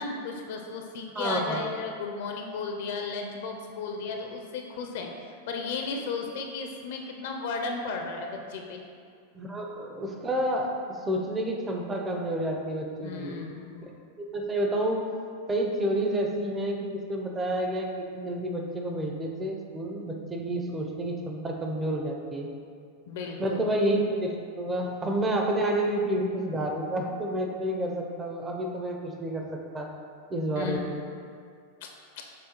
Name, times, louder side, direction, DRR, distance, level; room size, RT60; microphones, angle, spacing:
voice 1, 0.0-8.8 13.0-13.9 23.1-23.7 30.5-30.8 31.8-31.9 32.2-32.3, left 4 dB, 65° left, 2 dB, 0.4 m, -34 dB
voice 2, 1.2-1.6 9.3-13.4 14.3-15.1 15.5-22.5 23.4-29.9 30.3-31.0, right 1 dB, 20° right, 1 dB, 0.5 m, -29 dB
6.2 x 2.3 x 3.0 m, 2.3 s
hypercardioid pair, 105°, 0 cm